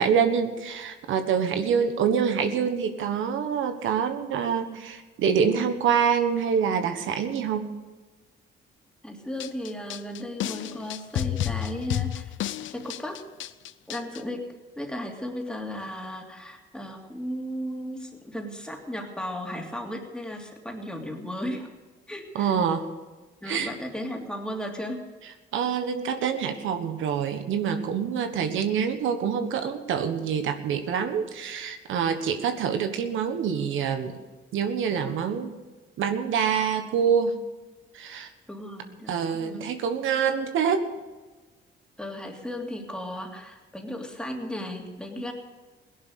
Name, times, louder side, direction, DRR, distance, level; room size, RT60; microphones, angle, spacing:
voice 1, 0.0-7.7 22.3-22.9 23.5-23.7 25.5-34.1 34.5-35.5 36.0-37.4 37.9-38.3 39.1-40.8, right 7 dB, 80° right, 7 dB, 1.4 m, -26 dB
voice 2, 9.0-12.4 12.7-13.2 13.9-14.5 14.8-21.7 22.1-22.6 23.4-25.0 38.5-39.7 42.0-45.3, equal, 5° left, 0 dB, 3.0 m, -35 dB
sound 1, 9.4-14.2, left 13 dB, 75° left, 0.6 m, -31 dB
17.0 x 11.0 x 6.5 m, 1.3 s
cardioid pair, 90°, 20 cm